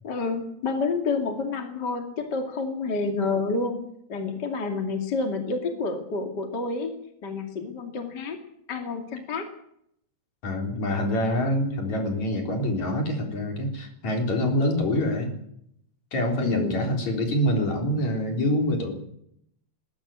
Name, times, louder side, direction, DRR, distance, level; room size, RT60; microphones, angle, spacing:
voice 1, 0.0-3.8 4.1-6.9 7.2-8.4 8.7-9.5 16.4-16.8, left 4 dB, 35° left, 4 dB, 2.7 m, -29 dB
voice 2, 10.4-15.3 16.1-18.9, left 1 dB, 55° left, 2 dB, 5.0 m, -25 dB
20.5 x 15.5 x 8.7 m, 0.72 s
omnidirectional pair, 3.9 m